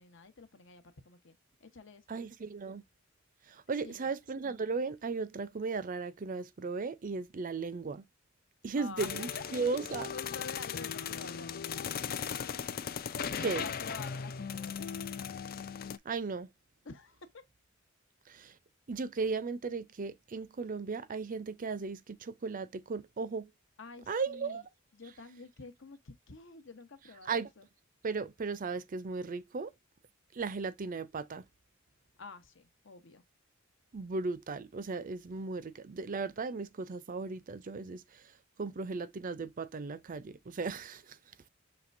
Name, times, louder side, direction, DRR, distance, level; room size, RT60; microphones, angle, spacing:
voice 1, 0.0-2.2 3.8-4.1 8.7-9.3 10.1-11.5 13.6-15.0 16.8-17.4 23.8-24.6 24.9-27.7 32.2-33.2, left 4 dB, 65° left, 1.0 m, -49 dB
voice 2, 2.1-2.8 3.5-8.1 8.6-10.1 13.4-13.7 16.0-16.5 18.3-18.6 18.9-23.5 24.1-24.7 27.3-27.5 28.0-29.7 30.3-31.4 33.9-41.2, right 4 dB, 40° right, 0.5 m, -36 dB
sound 1, 9.0-16.0, left 7 dB, 45° left, 0.4 m, -38 dB
5.9 x 3.2 x 2.6 m
head